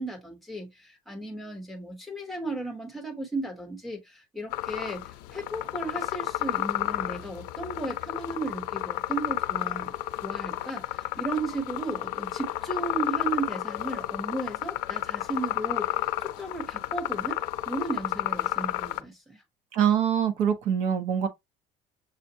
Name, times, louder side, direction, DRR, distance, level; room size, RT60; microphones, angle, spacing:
voice 1, 0.0-9.9 10.2-17.4 17.7-19.4, right 2 dB, ahead, 1.1 m, -35 dB
sound 1, 4.5-19.0, left 16 dB, 85° left, 0.5 m, -31 dB
voice 2, 19.7-21.3, right 8 dB, 55° right, 1.1 m, -24 dB
6.8 x 2.5 x 2.8 m
cardioid pair, 175°, 14 cm